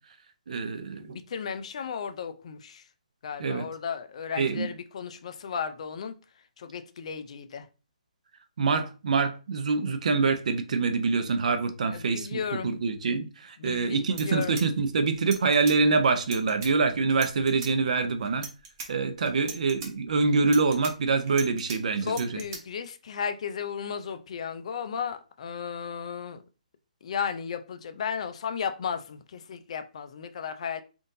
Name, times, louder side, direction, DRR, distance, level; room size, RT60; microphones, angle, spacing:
voice 1, 0.5-1.2 3.4-3.6 4.4-4.7 8.6-18.5 18.9-22.4, right 4 dB, 60° right, 0.5 m, -25 dB
voice 2, 1.0-2.8 3.2-6.1 6.6-7.7 11.9-12.8 13.6-14.6 22.0-26.4 27.0-30.8, left 7 dB, 50° left, 0.4 m, -34 dB
sound 1, 13.7-13.8 14.1-15.8 16.2-16.7 17.1-17.7 18.2-18.9 19.3-19.9 20.4-21.8 22.1-22.6, right 5 dB, 30° right, 0.8 m, -40 dB
3.6 x 2.5 x 2.6 m
hypercardioid pair, 155°, 4 cm